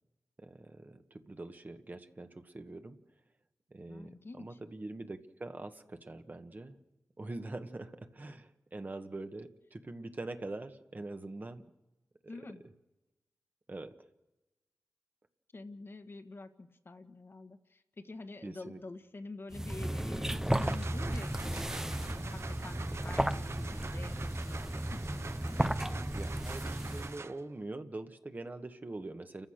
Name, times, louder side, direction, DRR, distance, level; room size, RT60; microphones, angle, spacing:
voice 1, 0.4-3.0 3.7-6.8 7.2-11.6 12.2-12.3 13.7-13.9 18.4-18.8 23.0-23.1 26.1-29.5, right 2 dB, 35° right, 7 dB, 1.5 m, -44 dB
voice 2, 3.9-4.6 12.3-12.6 15.5-25.7, left 3 dB, 45° left, 7 dB, 1.5 m, -48 dB
sound 1, 19.5-27.2, right 1 dB, 10° right, 0.7 m, -34 dB
sound 2, 20.3-27.6, right 4 dB, 50° right, 0.7 m, -46 dB
30.0 x 14.5 x 6.6 m, 1.0 s
wide cardioid pair, 75°, 5 cm